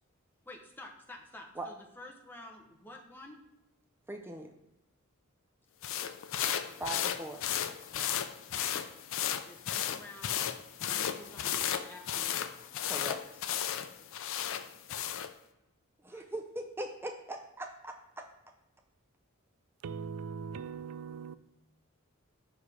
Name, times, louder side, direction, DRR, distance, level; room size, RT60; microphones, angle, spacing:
voice 1, 0.4-3.4 6.6-7.0 9.4-10.4 10.9-12.6 14.6-15.0 16.1-16.3, left 1 dB, 10° left, 0.8 m, -50 dB
voice 2, 4.1-4.5 6.8-7.4 12.8-13.4 16.0-18.3, right 1 dB, 10° right, 0.4 m, -40 dB
sound 1, 5.8-15.3, left 10 dB, 65° left, 0.4 m, -34 dB
voice 3, 19.8-21.4, right 6 dB, 90° right, 0.4 m, -40 dB
5.5 x 4.8 x 4.8 m
head